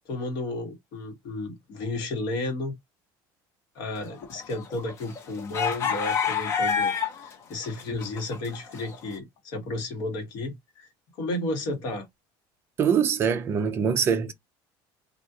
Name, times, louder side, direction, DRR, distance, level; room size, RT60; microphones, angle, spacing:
voice 1, 0.1-2.7 3.7-10.9 11.2-12.1, left 2 dB, 50° left, 1.2 m, -33 dB
sound 1, 4.1-7.3 7.6-9.0, left 7 dB, 30° left, 0.7 m, -28 dB
voice 2, 12.8-14.3, right 7 dB, 25° right, 0.4 m, -23 dB
3.4 x 2.4 x 2.7 m
cardioid pair, 175°, 9 cm